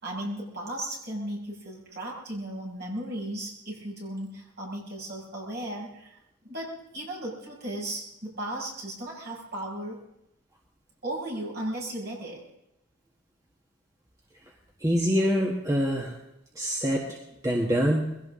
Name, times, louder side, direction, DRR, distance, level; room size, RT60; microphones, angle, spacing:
voice 1, 0.0-6.2 6.4-10.0 11.0-12.4, right 1 dB, 45° right, -3 dB, 7.0 m, -35 dB
voice 2, 14.8-16.1 16.5-17.2 17.4-18.2, equal, 15° right, 0 dB, 1.6 m, -25 dB
22.0 x 17.0 x 3.8 m, 0.84 s
head